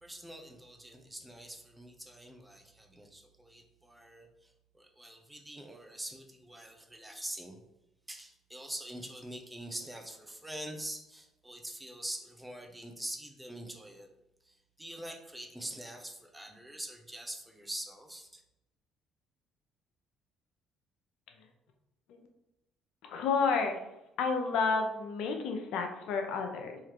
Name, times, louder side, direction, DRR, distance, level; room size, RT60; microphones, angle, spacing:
voice 1, 0.0-7.6 8.1-14.1 14.4-18.4, right 1 dB, 10° right, 3 dB, 0.8 m, -44 dB
voice 2, 23.0-23.8 24.2-26.8, left 4 dB, 75° left, 4 dB, 0.8 m, -31 dB
3.8 x 3.0 x 4.6 m, 0.90 s
supercardioid pair, 70°, 0 cm